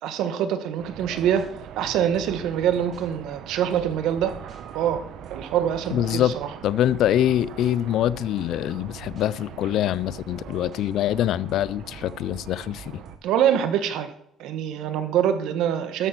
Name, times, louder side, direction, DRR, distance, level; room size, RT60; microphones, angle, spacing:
voice 1, 0.0-1.5 1.8-4.3 4.7-5.0 5.3-6.5 13.2-14.1 14.4-16.1, right 9 dB, 80° right, 1.4 m, -24 dB
sound 1, 0.8-13.2, right 9 dB, 65° right, 1.0 m, -42 dB
sound 2, 1.0-3.1 3.7-6.2 6.8-7.7 8.0-9.3 9.9-13.1, right 2 dB, 40° right, 3.2 m, -48 dB
voice 2, 5.9-6.3 6.6-13.0, left 12 dB, 60° left, 0.4 m, -24 dB
12.5 x 8.5 x 6.0 m
cardioid pair, 175°, 0 cm